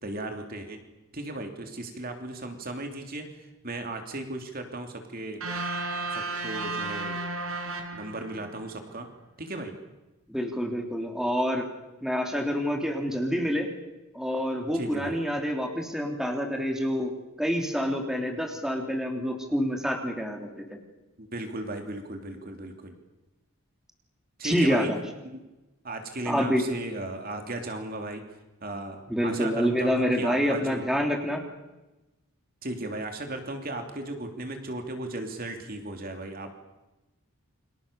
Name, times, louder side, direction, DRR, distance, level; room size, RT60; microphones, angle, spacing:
voice 1, 0.0-0.8 1.1-5.4 6.1-7.2 7.9-9.1 9.4-9.7 14.7-15.2 21.2-22.9 24.4-24.9 25.2-25.4 25.8-28.2 28.6-30.8 32.6-36.5, right 2 dB, 40° right, 4 dB, 3.1 m, -36 dB
sound 1, 5.4-8.6, right 3 dB, 70° right, 4.8 m, -33 dB
voice 2, 10.3-11.6 12.0-13.7 14.1-17.1 17.4-20.8 24.4-25.0 26.2-26.6 29.1-31.4, equal, ahead, 2 dB, 3.3 m, -27 dB
29.5 x 25.5 x 7.0 m, 1.1 s
head